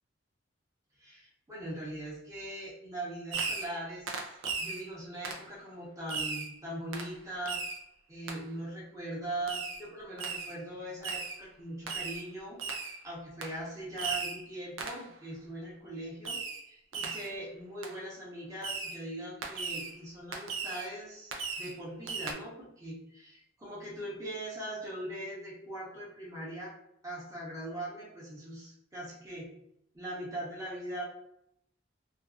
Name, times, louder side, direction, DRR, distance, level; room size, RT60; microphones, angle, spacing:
voice 1, 1.0-4.2 4.6-7.6 8.1-16.4 16.6-26.7 27.0-29.5 29.9-31.1, right 1 dB, 15° right, -5 dB, 0.8 m, -41 dB
Fireworks, 3.3-3.8 4.1-4.8 5.2-5.5 6.1-6.5 6.9-7.1 7.5-7.8 8.3-8.4 9.5-9.8 10.2-10.6 11.0-11.4 11.9-12.2 12.6-13.0 13.4-13.6 14.0-14.4 14.8-15.1 16.2-16.6 16.9-17.3 17.8-17.9 18.6-19.0 19.4-19.9 20.3-20.9 21.3-21.8 22.1-22.3, right 4 dB, 90° right, 0.4 m, -36 dB
2.6 x 2.3 x 2.4 m, 0.77 s
head